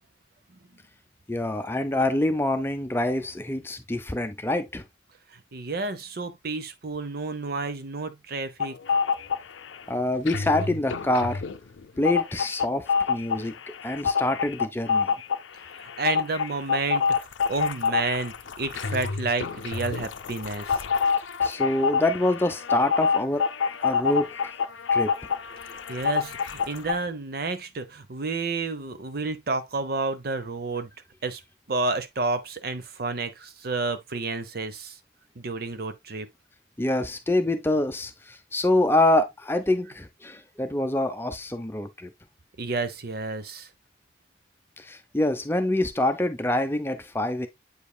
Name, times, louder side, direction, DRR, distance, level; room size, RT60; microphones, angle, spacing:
voice 1, 1.3-4.8 9.9-11.4 12.0-13.5 13.8-15.1 21.4-23.5 23.8-24.5 24.9-25.1 36.8-42.1 44.8-47.5, left 1 dB, 10° left, 0.6 m, -26 dB
voice 2, 5.3-8.8 15.7-20.8 25.7-30.9 31.2-31.4 31.7-35.0 35.4-36.3 42.6-43.7, right 3 dB, 55° right, 0.7 m, -30 dB
sound 1, 8.6-9.8 10.1-26.9, left 6 dB, 85° left, 0.5 m, -27 dB
8.1 x 5.2 x 2.2 m
head